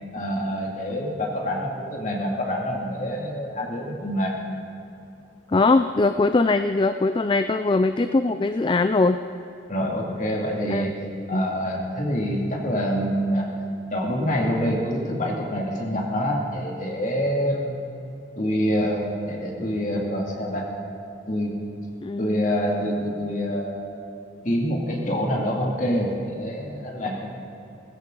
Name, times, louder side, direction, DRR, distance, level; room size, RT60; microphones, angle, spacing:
voice 1, 0.1-4.4 9.7-10.9 11.3-13.5 13.9-17.8 18.4-20.7 21.3-21.6 22.2-23.7 24.4-27.4, equal, 40° left, -1 dB, 2.5 m, -26 dB
voice 2, 5.5-9.2 10.7-10.9 11.3-11.4 22.0-22.5, left 3 dB, 25° left, 9 dB, 0.3 m, -21 dB
18.5 x 15.5 x 3.9 m, 2.8 s
head